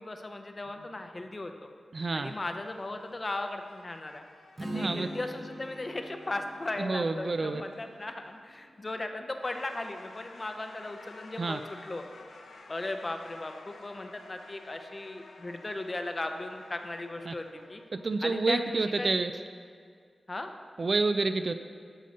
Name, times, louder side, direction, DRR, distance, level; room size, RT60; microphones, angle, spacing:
voice 1, 0.0-1.7 2.1-4.2 4.6-12.0 12.7-17.8 18.2-19.1 20.3-20.5, left 2 dB, 25° left, 6 dB, 0.7 m, -37 dB
sound 1, 0.6-1.4 2.1-8.7 9.3-18.3, left 3 dB, 85° left, 1.0 m, -54 dB
voice 2, 1.9-2.3 4.7-5.1 6.8-7.6 11.4-11.6 17.3-17.4 18.0-19.3 20.8-21.5, right 3 dB, 40° right, 9 dB, 0.4 m, -28 dB
Strum, 4.6-8.7, equal, 25° right, 1.0 m, -43 dB
12.0 x 5.5 x 6.4 m, 2.1 s
wide cardioid pair, 150°, 0 cm